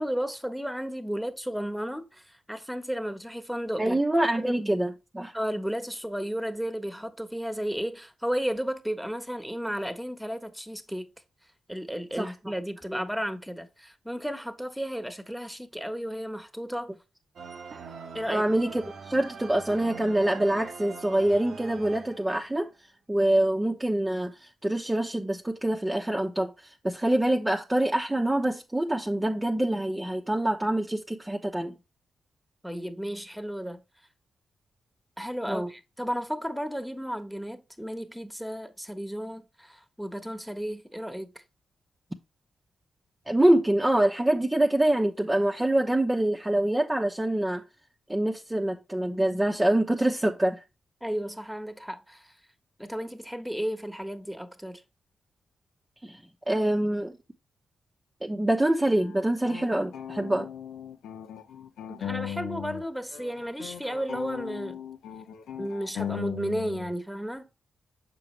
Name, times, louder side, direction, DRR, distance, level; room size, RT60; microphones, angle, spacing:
voice 1, 0.0-4.0 4.4-4.7 5.3-11.1 11.7-16.9 18.1-18.4 32.6-33.8 35.2-41.3 51.0-52.3 52.8-54.8 61.9-64.8 65.6-67.4, equal, ahead, 1.3 m, -33 dB
voice 2, 3.8-5.3 12.2-12.3 12.9-13.0 18.3-22.7 23.1-24.3 24.6-31.7 35.5-35.7 43.3-47.6 48.1-50.6 56.0-56.2 56.5-57.1 58.2-60.5, right 1 dB, 15° right, 0.9 m, -25 dB
sound 1, 17.4-22.6, right 5 dB, 65° right, 0.9 m, -43 dB
sound 2, 59.0-62.9 63.1-66.9, left 9 dB, 80° left, 0.6 m, -38 dB
6.9 x 4.9 x 3.2 m
hypercardioid pair, 40°, 0 cm